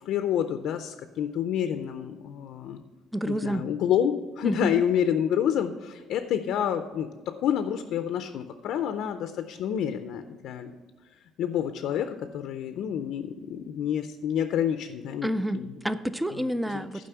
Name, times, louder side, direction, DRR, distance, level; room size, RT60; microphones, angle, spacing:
voice 1, 0.0-2.8 3.3-10.7 11.4-15.3 15.5-15.7 16.7-17.0, left 9 dB, 65° left, 8 dB, 0.5 m, -28 dB
voice 2, 3.1-3.6 4.4-4.8 15.2-17.1, equal, 5° right, 14 dB, 0.3 m, -29 dB
11.0 x 5.3 x 6.8 m, 1.4 s
cardioid pair, 160°, 0 cm